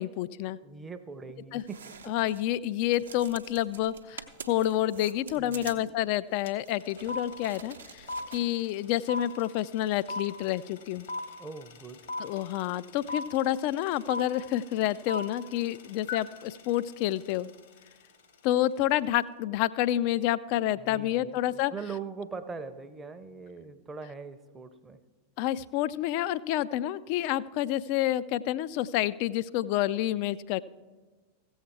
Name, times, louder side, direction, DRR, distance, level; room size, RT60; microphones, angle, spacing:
voice 1, 0.0-0.6 1.5-1.6 2.1-8.1 8.3-11.1 12.2-17.5 18.4-21.7 25.4-30.6, left 13 dB, 45° left, 17 dB, 0.3 m, -29 dB
voice 2, 0.6-2.2 5.3-5.9 11.4-12.0 20.8-25.0, right 5 dB, 15° right, 8 dB, 0.6 m, -42 dB
sound 1, 1.6-2.5 2.8-8.4, right 6 dB, 70° right, 0.7 m, -47 dB
sound 2, 6.5-6.6 6.7-17.9, left 2 dB, 60° left, 1.1 m, -38 dB
15.5 x 7.1 x 4.6 m, 1.3 s
figure-of-eight pair, 90°, 0 cm